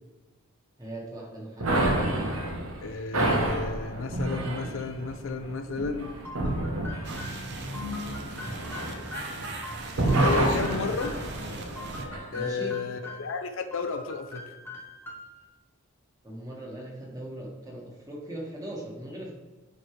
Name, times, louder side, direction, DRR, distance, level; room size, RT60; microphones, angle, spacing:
voice 1, 0.8-1.7 12.3-12.8 16.2-19.3, right 1 dB, 15° right, -2 dB, 1.5 m, -39 dB
sound 1, 1.6-9.6 9.9-12.3, right 1 dB, 75° right, 1.1 m, -29 dB
voice 2, 2.8-6.2 10.2-11.2 12.3-14.5, left 4 dB, 65° left, 8 dB, 0.5 m, -32 dB
sound 2, 6.2-11.3 11.8-13.4 13.7-15.4, left 2 dB, 10° left, 1.0 m, -43 dB
sound 3, 7.0-12.0, right 1 dB, 50° right, 0.8 m, -38 dB
9.7 x 4.6 x 3.2 m, 1.2 s
head